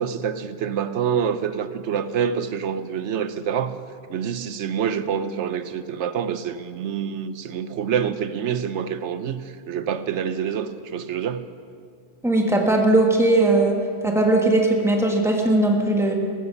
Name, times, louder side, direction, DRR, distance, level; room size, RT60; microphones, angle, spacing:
voice 1, 0.0-3.8 4.1-11.5, right 7 dB, 70° right, 12 dB, 1.0 m, -26 dB
voice 2, 12.2-13.8 14.0-16.1, right 2 dB, ahead, 1 dB, 1.5 m, -19 dB
15.0 x 13.5 x 5.6 m, 2.3 s
omnidirectional pair, 1.3 m